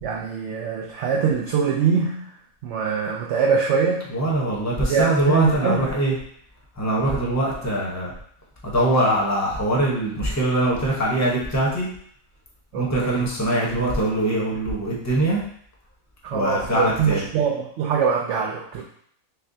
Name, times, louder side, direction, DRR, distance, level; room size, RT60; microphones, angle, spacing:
voice 1, 0.0-2.3 2.6-4.0 4.9-5.8 12.7-13.2 16.2-18.8, right 6 dB, 65° right, -1 dB, 0.7 m, -23 dB
voice 2, 4.1-6.1 6.8-8.1 8.6-11.9 12.8-15.4 16.3-17.3, right 1 dB, 15° left, -4 dB, 0.7 m, -22 dB
6.4 x 2.2 x 2.6 m, 0.63 s
omnidirectional pair, 1.5 m